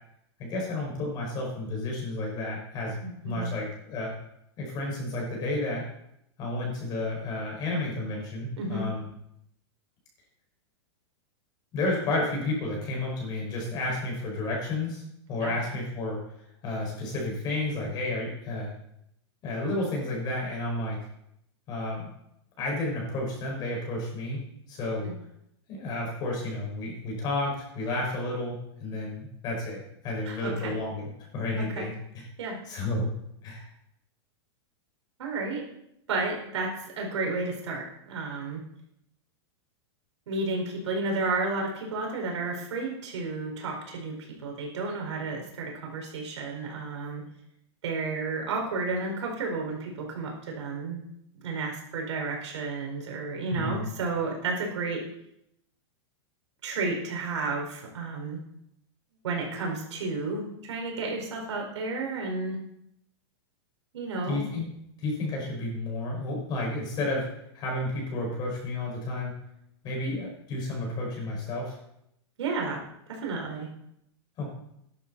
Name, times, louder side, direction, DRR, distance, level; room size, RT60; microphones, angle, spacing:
voice 1, 0.4-3.0 3.2-4.1 4.6-5.9 6.4-9.1 11.7-15.0 15.3-16.2 16.6-18.7 19.4-21.0 21.7-22.1 22.6-25.1 25.7-32.2 32.7-33.1 33.4-33.6 53.5-53.9 64.3-64.6 65.0-67.3 67.5-69.4 69.8-71.8 74.4-74.5, left 2 dB, 30° left, -1 dB, 5.5 m, -31 dB
voice 2, 3.0-3.5 8.6-8.9 15.4-15.5 25.0-25.1 30.3-30.7 31.6-31.9 32.4-32.6 35.2-35.6 36.1-38.6 40.3-47.2 47.8-51.0 51.4-55.0 56.6-58.4 59.2-62.6 63.9-64.4 72.4-72.8 73.1-73.7, right 3 dB, 80° right, 0 dB, 4.7 m, -32 dB
14.0 x 11.5 x 4.2 m, 0.77 s
supercardioid pair, 160°, 15 cm